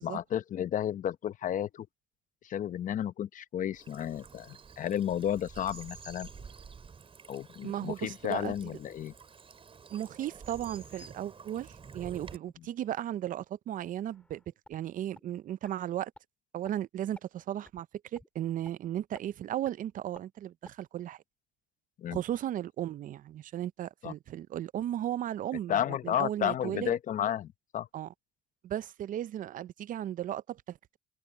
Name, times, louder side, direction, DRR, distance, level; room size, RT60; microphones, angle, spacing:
voice 1, 0.0-1.9 2.4-6.3 7.3-9.1 12.6-12.7 22.0-22.2 24.0-24.1 25.7-27.9, left 10 dB, 50° left, 0.8 m, -32 dB
Bird vocalization bird call bird song / Stream, 3.7-12.4, right 5 dB, 35° right, 5.0 m, -50 dB
voice 2, 7.6-8.7 9.9-14.4 14.7-16.1 16.5-17.9 18.1-21.2 22.1-26.9 27.9-28.1 28.6-31.0, right 11 dB, 50° right, 0.5 m, -35 dB
sound 1, 14.0-14.8 15.1-15.2 15.6-15.7 16.1-16.2 16.6-16.7 17.1-17.2 17.6-17.8 18.1-18.3 18.6-18.7 19.1-19.2 19.6-19.7 20.1-20.2 20.6-20.7, left 1 dB, 5° left, 5.3 m, -52 dB
cardioid pair, 110°, 17 cm